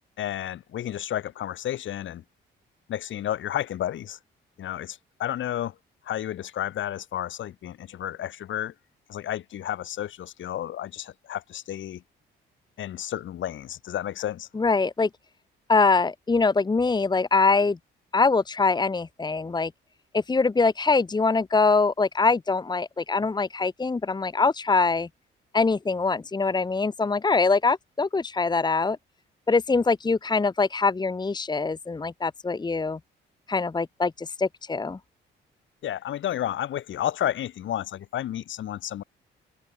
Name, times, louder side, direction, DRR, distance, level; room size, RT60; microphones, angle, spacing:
voice 1, 0.2-2.2 2.9-4.2 4.6-5.7 6.0-8.7 9.1-12.0 12.8-14.5 35.8-39.0, left 11 dB, 75° left, 7.9 m, -31 dB
voice 2, 14.5-15.1 15.7-17.8 18.1-19.7 20.1-25.1 25.5-29.0 29.5-33.0 33.5-35.0, left 4 dB, 20° left, 1.2 m, -23 dB
open air
cardioid pair, 90°, 20 cm